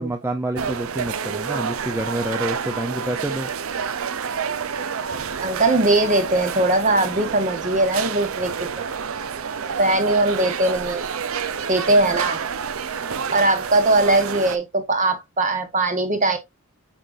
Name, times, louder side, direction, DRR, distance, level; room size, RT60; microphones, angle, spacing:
voice 1, 0.0-3.5, right 1 dB, 10° right, 0.6 m, -28 dB
sound 1, 0.5-14.6, right 6 dB, 70° right, 0.6 m, -29 dB
voice 2, 5.4-8.9 9.4-11.0 11.7-12.4 13.3-16.4, right 2 dB, 35° right, 1.4 m, -20 dB
6.5 x 5.8 x 2.6 m
head